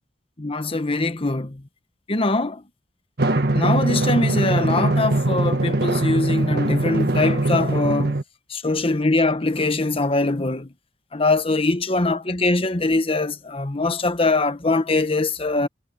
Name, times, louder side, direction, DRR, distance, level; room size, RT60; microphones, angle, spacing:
voice 1, 0.4-1.6 2.1-2.6 3.5-8.2 8.5-10.7 11.1-15.7, left 2 dB, 30° left, 1.2 m, -22 dB
Drum, 3.2-8.2, right 2 dB, 60° right, 1.8 m, -21 dB
head